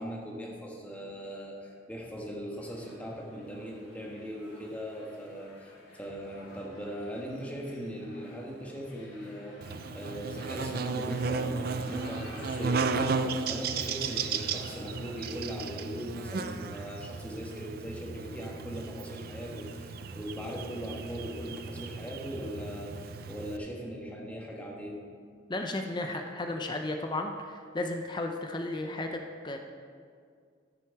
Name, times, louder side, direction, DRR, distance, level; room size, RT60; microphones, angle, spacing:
voice 1, 0.0-25.0, equal, 10° left, -2 dB, 1.3 m, -39 dB
sound 1, 2.6-15.5, left 1 dB, 85° left, 2.7 m, -53 dB
Buzz, 9.6-23.6, right 4 dB, 50° right, 0.5 m, -35 dB
voice 2, 25.5-29.6, left 2 dB, 25° left, 4 dB, 0.6 m, -34 dB
13.5 x 6.3 x 4.6 m, 2.1 s
head